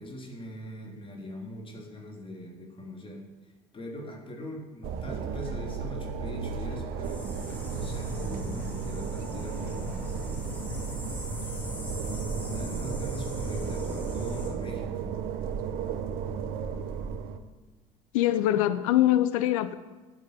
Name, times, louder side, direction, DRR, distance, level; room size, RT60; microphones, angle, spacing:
voice 1, 0.0-3.2 3.7-7.3 7.6-9.9 12.5-15.2, equal, 30° left, 1 dB, 3.7 m, -41 dB
sound 1, 4.8-17.4, right 6 dB, 50° right, 1.1 m, -34 dB
sound 2, 7.0-14.5, equal, 10° left, 4.3 m, -38 dB
voice 2, 18.1-19.7, left 13 dB, 65° left, 13 dB, 0.7 m, -23 dB
11.0 x 9.4 x 8.2 m, 1.3 s
figure-of-eight pair, 60°, 19 cm